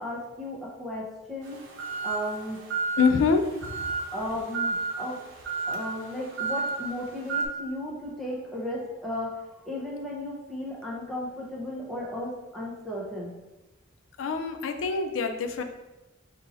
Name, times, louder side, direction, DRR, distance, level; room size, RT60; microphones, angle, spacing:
voice 1, 0.0-2.6 4.1-5.2 5.7-13.3, left 1 dB, ahead, -6 dB, 0.8 m, -35 dB
sound 1, 1.4-7.5, right 4 dB, 90° right, 0.7 m, -32 dB
voice 2, 3.0-3.9 14.2-15.6, left 5 dB, 85° left, 6 dB, 0.4 m, -25 dB
5.4 x 2.8 x 2.6 m, 1.0 s
head